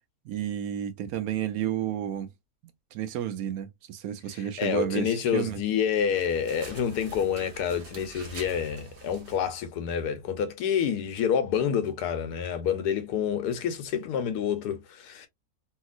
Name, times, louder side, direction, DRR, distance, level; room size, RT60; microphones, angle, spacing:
voice 1, 0.3-2.3 2.9-5.6, right 10 dB, 75° right, 1.0 m, -31 dB
voice 2, 4.3-15.3, left 8 dB, 90° left, 1.2 m, -28 dB
sound 1, 6.0-9.5, right 3 dB, 50° right, 1.2 m, -46 dB
2.9 x 2.8 x 2.4 m
omnidirectional pair, 1.6 m